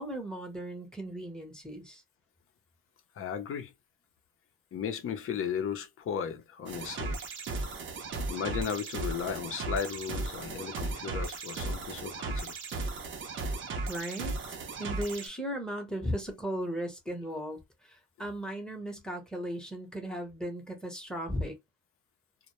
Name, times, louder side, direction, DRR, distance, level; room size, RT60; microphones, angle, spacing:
voice 1, 0.0-2.0 13.9-14.3 14.8-21.6, equal, ahead, 0.8 m, -36 dB
voice 2, 3.2-3.7 4.7-7.2 8.3-12.6, left 7 dB, 40° left, 0.6 m, -35 dB
sound 1, 6.7-15.3, right 3 dB, 35° right, 0.6 m, -36 dB
2.1 x 2.1 x 2.9 m
cardioid pair, 120°, 33 cm